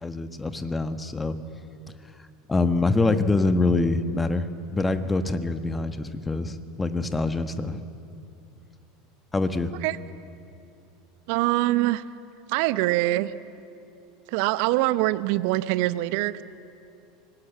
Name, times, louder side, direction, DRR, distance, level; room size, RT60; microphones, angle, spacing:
voice 1, 0.0-1.4 2.5-7.8 9.3-9.7, left 3 dB, 15° left, 10 dB, 1.5 m, -25 dB
voice 2, 11.3-12.0 12.5-13.3 14.3-16.4, right 17 dB, 60° right, 16 dB, 0.8 m, -24 dB
25.0 x 19.5 x 8.9 m, 2.6 s
figure-of-eight pair, 75°, 0 cm